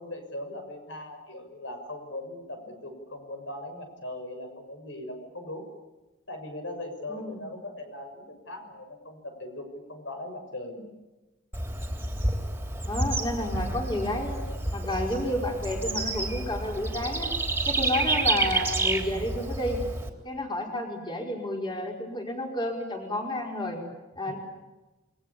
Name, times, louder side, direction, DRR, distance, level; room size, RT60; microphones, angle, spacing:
voice 1, 0.0-5.7 6.3-10.9, left 1 dB, 75° left, 6 dB, 6.6 m, -39 dB
voice 2, 7.1-7.4 12.8-14.4 14.7-17.3 17.6-19.8 20.2-23.8 24.2-24.4, left 1 dB, 25° left, 1 dB, 5.1 m, -31 dB
Bird / Insect, 11.5-20.1, right 2 dB, 10° right, 3.5 m, -29 dB
27.5 x 24.0 x 8.7 m, 1.1 s
head